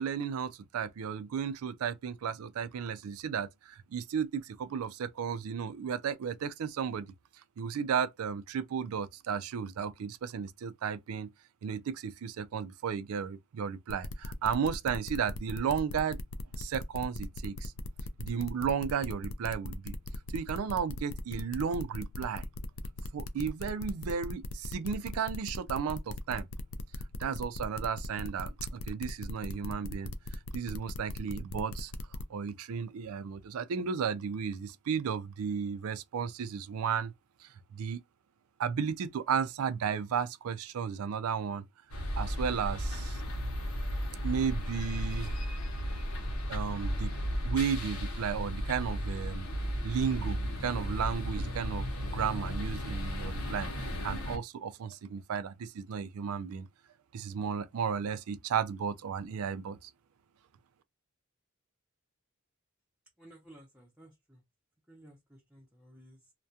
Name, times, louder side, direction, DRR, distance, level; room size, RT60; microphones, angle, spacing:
voice 1, 0.0-7.1 7.6-11.3 11.6-16.2 16.6-17.7 18.2-19.9 20.3-22.5 23.1-26.5 27.2-30.1 30.5-31.9 32.3-37.1 37.4-38.0 38.6-41.6 42.2-43.2 44.2-45.3 46.5-47.1 47.4-49.5 49.8-56.7 57.1-59.9, right 7 dB, 85° right, 0.4 m, -34 dB
sound 1, 13.9-32.2, left 2 dB, 70° left, 0.4 m, -40 dB
sound 2, 41.9-54.4, equal, 90° left, 0.8 m, -34 dB
voice 2, 63.2-64.4 64.9-66.3, right 1 dB, 5° right, 0.6 m, -56 dB
2.3 x 2.1 x 2.7 m
head